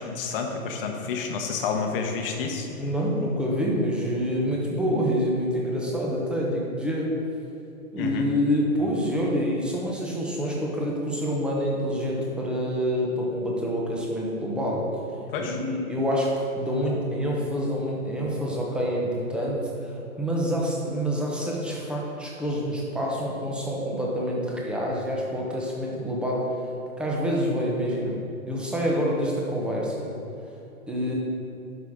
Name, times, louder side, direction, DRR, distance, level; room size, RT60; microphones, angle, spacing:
voice 1, 0.0-2.7 8.0-8.3 15.3-15.6, left 5 dB, 40° left, 3 dB, 1.0 m, -29 dB
voice 2, 2.7-7.1 7.9-14.9 15.4-16.3 16.6-26.5 27.0-28.2 28.5-30.1 30.9-31.1, equal, ahead, -3 dB, 0.8 m, -27 dB
10.5 x 6.5 x 3.7 m, 2.9 s
hypercardioid pair, 145°, 44 cm